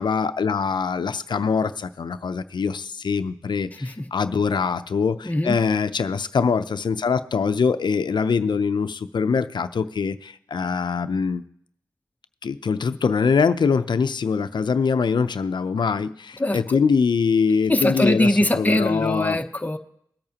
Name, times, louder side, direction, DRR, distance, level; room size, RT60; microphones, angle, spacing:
voice 1, 0.0-11.4 12.4-19.4, left 5 dB, 70° left, 12 dB, 0.6 m, -23 dB
voice 2, 5.2-5.6 16.4-16.6 17.7-19.8, left 1 dB, 20° left, 6 dB, 0.9 m, -21 dB
22.0 x 8.7 x 2.9 m, 0.72 s
cardioid pair, 55°, 8 cm